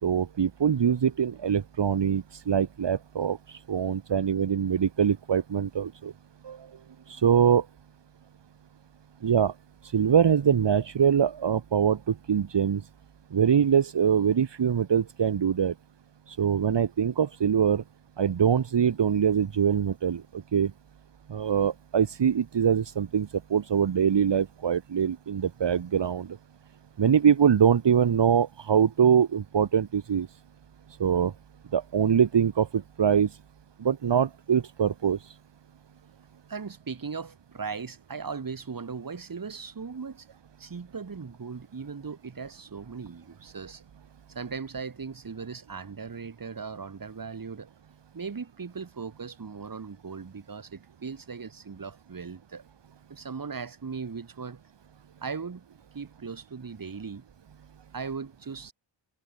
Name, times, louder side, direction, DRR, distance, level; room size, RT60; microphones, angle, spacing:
voice 1, 0.0-6.1 6.4-6.7 7.1-7.7 9.2-9.5 9.8-12.9 13.3-15.7 16.3-17.8 18.2-20.7 21.3-26.4 27.0-30.3 30.9-31.3 31.7-33.4 33.8-35.4, right 8 dB, 65° right, 2.3 m, -24 dB
voice 2, 36.5-40.2 40.6-43.8 44.4-47.7 48.1-52.6 53.1-54.6 55.2-55.6 55.9-57.2 57.9-58.7, right 5 dB, 45° right, 5.5 m, -38 dB
wide cardioid pair, 130°, 46 cm